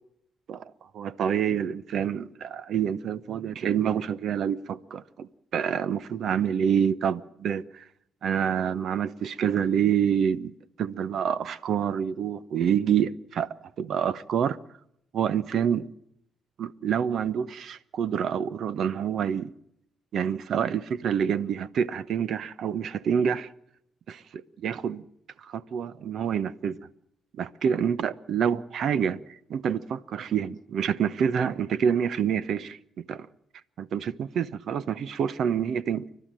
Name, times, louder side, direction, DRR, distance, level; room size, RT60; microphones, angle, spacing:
voice 1, 0.5-7.8 8.2-10.5 10.8-14.6 15.1-15.9 16.6-19.5 20.1-23.5 24.1-25.0 25.4-26.8 27.3-32.8 33.1-33.3 33.8-36.1, right 8 dB, 65° right, 0.9 m, -27 dB
29.5 x 12.0 x 7.6 m
cardioid pair, 90°, 0 cm